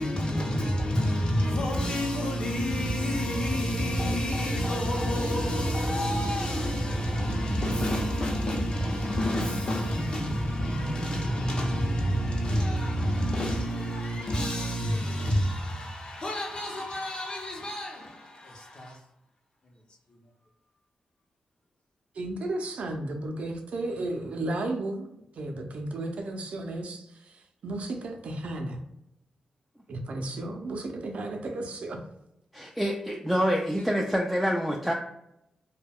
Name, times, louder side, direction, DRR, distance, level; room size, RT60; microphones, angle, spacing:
voice 1, 0.0-19.0 33.7-33.9, equal, 45° left, 0.7 m, -28 dB
voice 2, 22.1-28.8 29.9-32.0, right 2 dB, 70° right, 0.5 m, -34 dB
voice 3, 32.5-34.9, equal, ahead, 0.3 m, -26 dB
2.2 x 2.2 x 3.4 m
cardioid pair, 85°, 2 cm